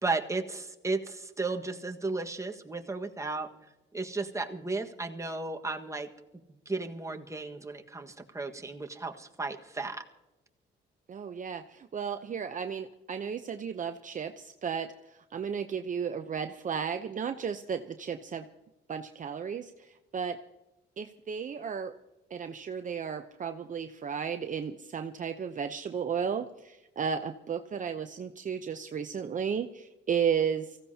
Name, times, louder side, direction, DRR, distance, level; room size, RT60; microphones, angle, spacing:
voice 1, 0.0-3.5 3.9-6.1 6.6-10.0, right 3 dB, 15° right, 3 dB, 1.5 m, -34 dB
voice 2, 11.1-14.9 15.3-18.4 18.9-20.4 21.0-21.9 22.3-30.8, right 7 dB, 40° right, 7 dB, 0.7 m, -34 dB
24.0 x 16.0 x 2.8 m, 1.0 s
cardioid pair, 90°, 20 cm